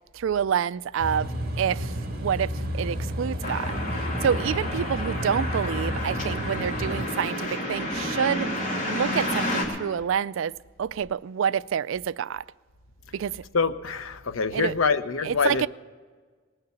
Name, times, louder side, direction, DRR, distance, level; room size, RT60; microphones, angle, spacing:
voice 1, 0.1-1.3 1.6-1.9 2.2-8.5 8.9-10.5 10.8-12.4 13.1-13.3 14.5-14.7 15.2-15.7, right 8 dB, 75° right, 0.3 m, -27 dB
sound 1, 1.0-7.0, equal, 50° right, 2.3 m, -31 dB
sound 2, 3.4-9.6, left 1 dB, 40° left, 2.7 m, -30 dB
voice 2, 13.5-15.6, left 5 dB, 90° left, 0.7 m, -25 dB
19.5 x 6.8 x 8.2 m
head